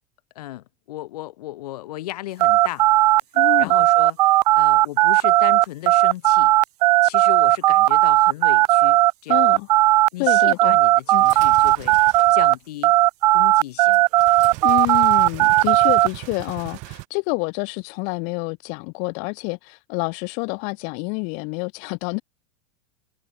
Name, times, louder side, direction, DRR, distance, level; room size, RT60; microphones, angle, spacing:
voice 1, 0.4-2.9 3.6-6.5 7.0-9.4 10.1-12.9 13.3-14.0, left 16 dB, 80° left, 2.3 m, -35 dB
sound 1, 2.4-12.5 12.8-16.1, right 17 dB, 90° right, 0.8 m, -16 dB
voice 2, 3.3-3.8 9.3-9.7 10.2-10.8 11.1-11.3 14.6-22.2, left 35 dB, 40° left, 1.4 m, -28 dB
sound 2, 11.1-12.5 13.9-17.0, right 27 dB, 40° right, 2.1 m, -38 dB
supercardioid pair, 175°, 20 cm